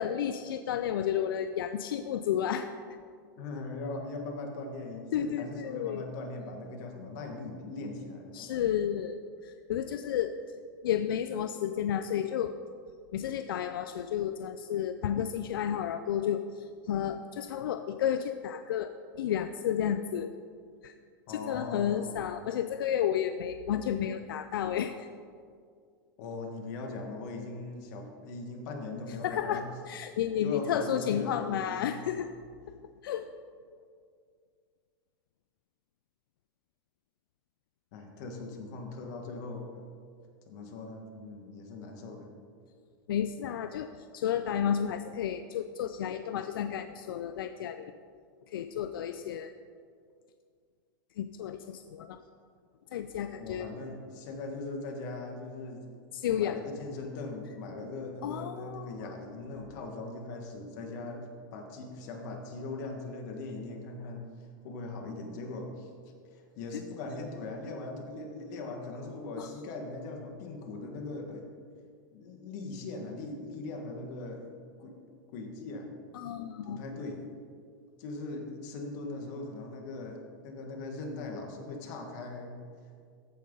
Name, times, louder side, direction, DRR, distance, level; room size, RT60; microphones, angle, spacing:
voice 1, 0.0-2.7 5.1-6.0 8.3-9.2 9.4-10.4 10.8-12.6 13.1-18.9 19.2-20.4 20.8-20.9 21.3-25.1 29.2-32.3 32.7-32.8 33.0-33.3 43.1-47.9 48.5-49.5 51.2-52.2 52.9-53.7 56.1-56.6 58.2-59.1 69.4-69.5 76.1-76.8, left 9 dB, 90° left, 9 dB, 0.4 m, -32 dB
voice 2, 3.4-8.5 21.3-22.2 26.2-29.6 30.4-32.0 37.9-39.8 40.5-42.3 53.4-55.8 56.3-64.2 64.6-65.9 66.3-71.4 72.1-74.5 74.8-74.9 75.3-75.9 76.6-77.2 78.0-82.6, left 3 dB, 55° left, 2 dB, 1.6 m, -40 dB
14.0 x 5.3 x 3.8 m, 2.2 s
supercardioid pair, 135°, 11 cm